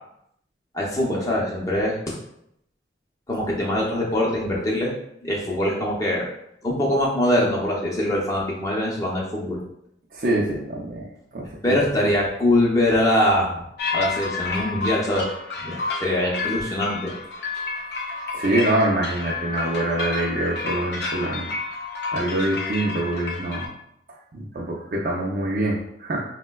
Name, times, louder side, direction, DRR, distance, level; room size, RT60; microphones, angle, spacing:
voice 1, 0.7-2.1 3.3-4.9 5.2-6.3 6.6-9.6 11.6-13.6 13.9-15.3 15.6-17.1, left 1 dB, 20° left, -3 dB, 0.6 m, -23 dB
voice 2, 10.1-11.8 18.3-21.5 22.1-23.7 24.1-26.2, right 1 dB, 50° right, -4 dB, 0.4 m, -25 dB
sound 1, 13.8-23.7, left 4 dB, 65° left, 0.5 m, -30 dB
4.2 x 2.1 x 2.2 m, 0.77 s
head